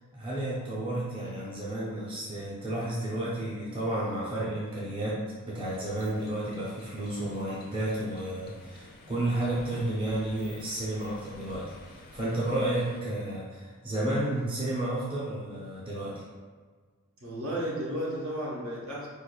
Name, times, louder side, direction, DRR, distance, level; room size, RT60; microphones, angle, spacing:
voice 1, 0.1-5.2 5.5-16.2, right 1 dB, 25° right, -8 dB, 0.6 m, -32 dB
sound 1, 5.6-13.0, left 2 dB, 40° left, 0.4 m, -51 dB
voice 2, 17.2-19.1, equal, 65° right, -5 dB, 1.0 m, -33 dB
4.6 x 2.5 x 2.2 m, 1.5 s
head